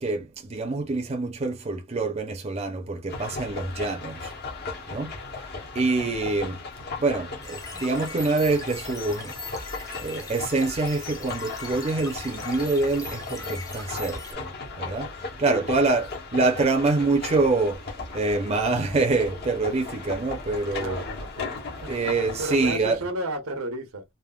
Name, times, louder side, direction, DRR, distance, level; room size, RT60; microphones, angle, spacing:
voice 1, 0.0-4.3 4.9-5.1 5.7-6.6 7.0-9.3 10.0-14.5 14.8-15.1 15.4-21.0 21.9-23.0, right 3 dB, 30° right, 0.6 m, -25 dB
sound 1, 3.1-22.7, left 3 dB, 50° left, 0.8 m, -37 dB
sound 2, 7.4-14.3, left 3 dB, 15° left, 0.6 m, -40 dB
voice 2, 15.4-15.8 20.7-21.9 22.4-24.0, right 1 dB, 85° right, 0.9 m, -33 dB
3.4 x 2.1 x 2.3 m
head